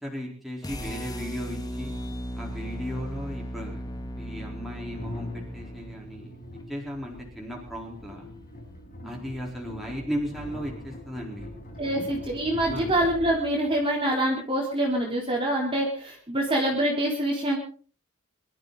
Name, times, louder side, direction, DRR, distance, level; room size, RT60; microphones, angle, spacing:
voice 1, 0.0-1.9 2.4-3.8 4.2-6.4 6.7-8.3 9.0-11.5 11.9-12.1 12.7-12.9, equal, ahead, -3 dB, 4.1 m, -36 dB
sound 1, 0.6-6.8, equal, 20° left, 1.9 m, -37 dB
sound 2, 3.6-14.2, left 1 dB, 40° left, 5.0 m, -43 dB
voice 2, 11.8-17.6, right 1 dB, 25° right, -2 dB, 3.8 m, -25 dB
25.0 x 13.0 x 4.0 m, 0.42 s
head